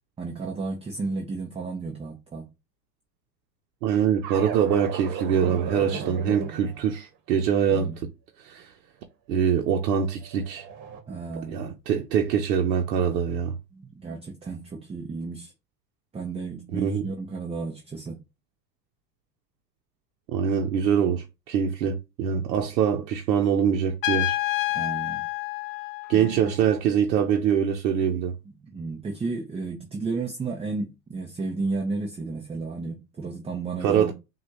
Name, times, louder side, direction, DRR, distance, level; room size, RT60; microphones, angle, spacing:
voice 1, 0.2-2.5 7.7-8.0 11.1-11.6 13.7-15.5 16.1-18.2 24.7-25.2 26.1-26.3 28.5-34.1, right 3 dB, 15° right, 0.6 m, -33 dB
voice 2, 3.8-8.1 8.4-8.7 9.3-10.7 11.5-13.5 16.7-17.1 20.3-24.4 26.1-28.3 33.8-34.1, right 8 dB, 85° right, 0.8 m, -24 dB
sound 1, 4.2-6.9 9.7-11.0, right 6 dB, 45° right, 1.2 m, -35 dB
Trumpet, 24.0-26.7, left 18 dB, 55° left, 0.7 m, -29 dB
5.9 x 2.4 x 2.8 m
hypercardioid pair, 100°, 49 cm